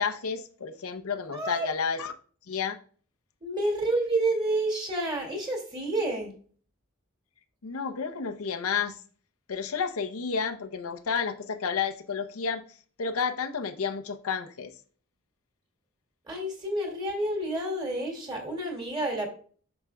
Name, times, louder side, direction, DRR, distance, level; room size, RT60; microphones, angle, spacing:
voice 1, 0.0-2.1 2.5-2.8 7.6-8.9 9.5-12.6 13.0-14.7, left 6 dB, 90° left, 0.7 m, -31 dB
voice 2, 1.3-1.7 3.4-6.3 16.3-19.3, right 1 dB, 20° right, 2.0 m, -29 dB
7.9 x 6.2 x 2.2 m
head